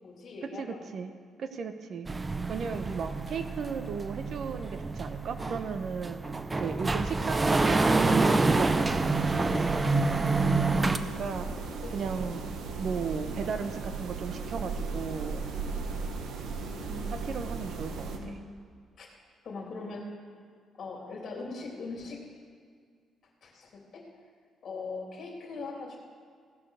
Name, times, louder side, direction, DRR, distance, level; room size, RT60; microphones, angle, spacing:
voice 1, 0.0-0.9 11.8-12.6 16.7-17.2 18.1-18.5 19.0-19.1 19.4-20.1 20.8-22.2 23.4-24.1 24.6-26.0, left 3 dB, 55° left, -1 dB, 3.1 m, -41 dB
voice 2, 0.6-1.1 1.4-2.1 2.5-6.2 6.5-9.2 11.0-11.5 11.9-12.5 12.8-15.5 17.2-18.4, right 5 dB, 60° right, 8 dB, 0.9 m, -36 dB
sound 1, 2.1-11.0, right 3 dB, 25° right, 0.6 m, -27 dB
sound 2, 8.5-18.2, right 4 dB, 75° right, 1.4 m, -36 dB
16.5 x 6.2 x 6.6 m, 2.1 s
cardioid pair, 90°, 0 cm